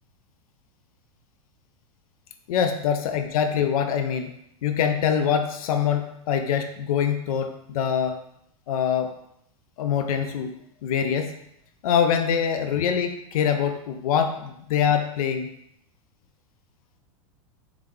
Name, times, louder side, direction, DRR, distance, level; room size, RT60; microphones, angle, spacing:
voice 1, 2.5-4.3 4.6-8.2 8.7-9.1 9.8-10.5 10.8-11.3 11.8-15.5, left 8 dB, 75° left, 6 dB, 0.5 m, -24 dB
3.7 x 3.2 x 3.2 m, 0.76 s
hypercardioid pair, 125°, 19 cm